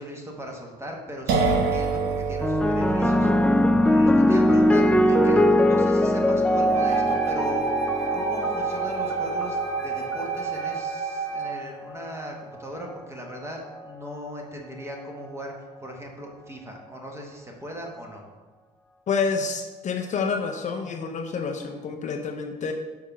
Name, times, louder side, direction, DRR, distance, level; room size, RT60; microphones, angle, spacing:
voice 1, 0.0-18.2, equal, 15° right, 1 dB, 1.3 m, -38 dB
sound 1, 1.3-8.9, right 4 dB, 70° right, 1.0 m, -30 dB
sound 2, 2.4-11.0 11.9-12.3, left 1 dB, 5° left, 0.3 m, -22 dB
Wind instrument woodwind instrument, 6.7-11.6, right 6 dB, 40° right, 0.8 m, -29 dB
voice 2, 19.1-22.7, left 5 dB, 45° left, 4 dB, 0.6 m, -28 dB
6.4 x 3.5 x 5.9 m, 1.3 s
cardioid pair, 110°, 17 cm